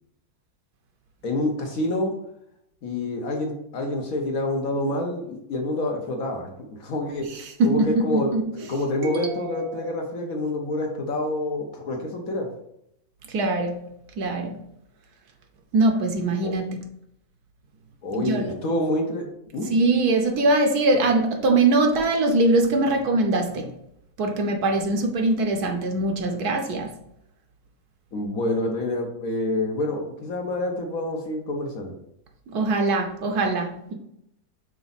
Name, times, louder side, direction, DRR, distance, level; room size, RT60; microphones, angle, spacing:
voice 1, 1.2-2.1 2.8-12.5 16.4-16.5 18.0-19.3 19.5-19.7 28.1-32.0, left 1 dB, 55° left, 2 dB, 1.2 m, -27 dB
voice 2, 7.6-8.4 9.1-9.4 9.8-9.9 13.3-13.7 14.2-14.6 15.7-16.7 18.2-18.5 19.7-23.7 24.2-26.9 32.5-33.9, right 2 dB, 65° right, 4 dB, 1.2 m, -22 dB
5.9 x 4.0 x 4.0 m, 0.78 s
omnidirectional pair, 1.9 m